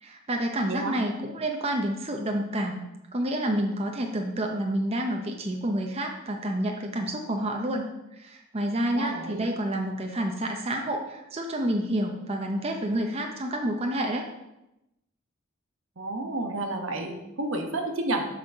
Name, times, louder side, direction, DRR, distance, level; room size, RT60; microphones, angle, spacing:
voice 1, 0.0-2.8 3.1-7.8 8.2-14.2, right 1 dB, 30° right, 2 dB, 0.7 m, -29 dB
voice 2, 8.9-9.5 16.0-18.3, right 2 dB, 75° right, 3 dB, 1.2 m, -30 dB
7.5 x 4.2 x 6.1 m, 0.91 s
head